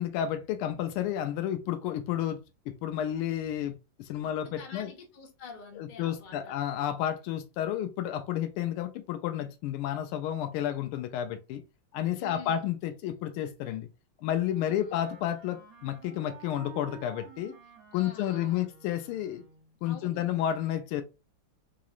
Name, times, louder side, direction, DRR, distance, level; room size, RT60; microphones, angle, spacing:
voice 1, 0.0-4.9 5.8-11.6 11.9-13.9 14.2-17.5 17.9-19.4 19.8-21.0, left 11 dB, 85° left, 1.5 m, -31 dB
voice 2, 4.2-6.6 12.2-12.6 14.7-15.0 17.9-18.7 19.8-20.4, left 5 dB, 60° left, 0.5 m, -48 dB
Wind instrument woodwind instrument, 14.4-19.8, right 7 dB, 55° right, 1.1 m, -51 dB
3.9 x 2.9 x 2.4 m
omnidirectional pair, 2.3 m